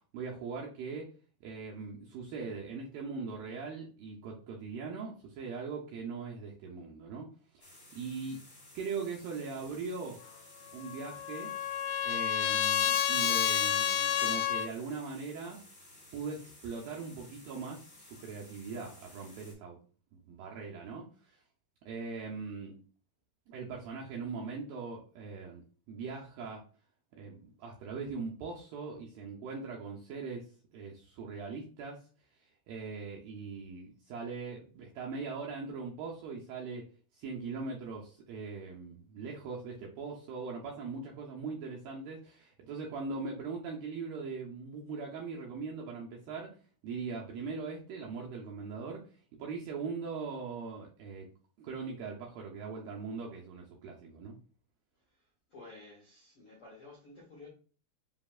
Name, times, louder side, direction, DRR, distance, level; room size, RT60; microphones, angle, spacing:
voice 1, 0.1-1.1 1.4-8.4 8.7-10.2 10.7-11.5 12.0-15.6 16.1-19.8 20.1-21.4 21.9-22.8 23.5-26.6 27.2-36.9 37.1-46.6 46.8-51.3 51.6-54.4, right 4 dB, 80° right, -1 dB, 2.1 m, -41 dB
sound 1, 7.6-19.5, left 1 dB, 35° left, 0.9 m, -55 dB
Trumpet, 10.8-14.7, left 10 dB, 90° left, 2.7 m, -29 dB
voice 2, 55.5-57.5, left 3 dB, 65° left, -5 dB, 1.4 m, -52 dB
7.3 x 2.8 x 2.4 m, 0.39 s
omnidirectional pair, 4.7 m